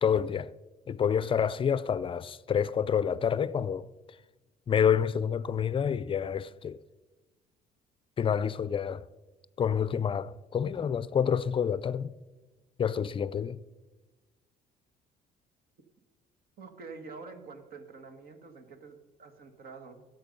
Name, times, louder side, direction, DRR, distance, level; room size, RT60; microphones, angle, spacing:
voice 1, 0.0-0.5 0.9-3.9 4.7-6.8 8.2-9.1 9.6-12.1 12.8-13.6, left 8 dB, 30° left, 0.4 m, -28 dB
voice 2, 16.6-20.1, right 4 dB, 65° right, 1.7 m, -47 dB
16.0 x 7.8 x 5.3 m
cardioid pair, 110°, 17 cm